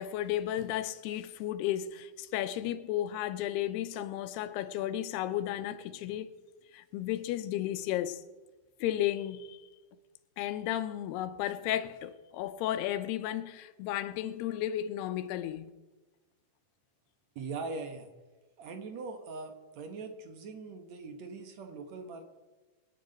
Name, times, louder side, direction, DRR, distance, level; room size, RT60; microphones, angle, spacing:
voice 1, 0.0-6.3 6.7-8.2 8.8-9.6 10.4-15.7, left 12 dB, 90° left, 2.8 m, -33 dB
voice 2, 17.4-18.1 18.6-22.2, right 4 dB, 60° right, 2.0 m, -41 dB
25.5 x 9.9 x 5.3 m
omnidirectional pair, 4.5 m